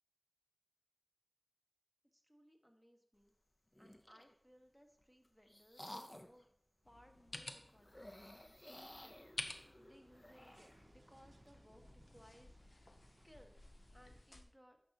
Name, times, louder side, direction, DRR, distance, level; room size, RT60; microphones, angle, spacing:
voice 1, 2.1-3.3 3.8-6.5 6.9-13.5 13.9-14.8, equal, 10° left, 3 dB, 1.1 m, -65 dB
sound 1, 3.7-4.3 5.0-6.4 7.8-10.9, left 1 dB, 35° left, 0.5 m, -55 dB
sound 2, 4.3-4.7 5.0-14.2, right 2 dB, 75° right, 0.5 m, -70 dB
sound 3, 6.8-14.4, left 2 dB, 90° left, 0.5 m, -53 dB
9.6 x 5.8 x 2.8 m, 0.67 s
wide cardioid pair, 45°, 0 cm